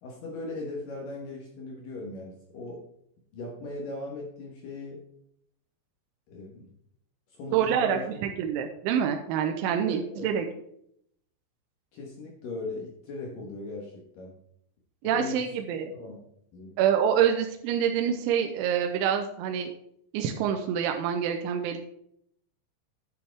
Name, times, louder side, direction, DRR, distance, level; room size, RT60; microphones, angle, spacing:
voice 1, 0.0-2.8 3.3-5.0 6.3-6.7 7.3-8.2 9.9-10.3 11.9-14.4 15.0-15.5 15.9-16.2 16.5-16.7, left 2 dB, 65° left, -1 dB, 2.2 m, -38 dB
voice 2, 7.5-10.5 15.0-15.9 16.8-19.7 20.1-21.8, right 8 dB, 85° right, 4 dB, 3.0 m, -26 dB
11.0 x 6.9 x 3.4 m, 0.72 s
omnidirectional pair, 5.6 m